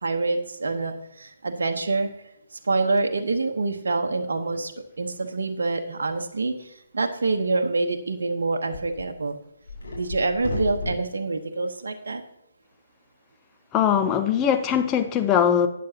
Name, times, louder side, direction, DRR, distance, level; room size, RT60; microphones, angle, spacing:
voice 1, 0.0-2.1 2.5-4.7 5.0-9.4 10.0-12.2, right 3 dB, 60° right, 4 dB, 1.0 m, -26 dB
sound 1, 5.3-5.4 8.7-9.0 9.6-11.0, left 2 dB, 65° left, 4.4 m, -32 dB
voice 2, 13.7-15.7, left 8 dB, 20° left, 8 dB, 0.7 m, -21 dB
12.5 x 9.3 x 2.8 m, 0.82 s
figure-of-eight pair, 135°, 0 cm